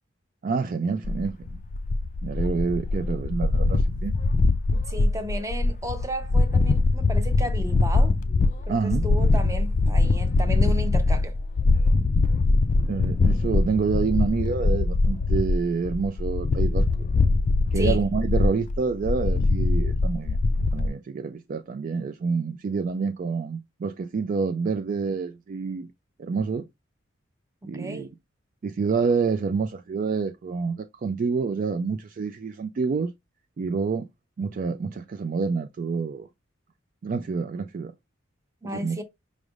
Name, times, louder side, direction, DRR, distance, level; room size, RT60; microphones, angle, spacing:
voice 1, 0.4-1.6 2.2-4.1 8.7-9.1 12.9-17.1 17.7-20.4 20.7-25.9 26.2-26.6 27.6-28.1 28.6-33.1 33.6-34.1 34.4-36.3 37.0-37.9 38.6-39.0, right 5 dB, 45° right, 0.3 m, -27 dB
sound 1, 1.0-20.9, left 3 dB, 40° left, 0.3 m, -22 dB
voice 2, 4.7-8.1 8.7-11.3 17.7-18.0 27.7-28.1 38.6-39.0, right 1 dB, 15° right, 0.7 m, -34 dB
5.1 x 3.3 x 2.4 m
head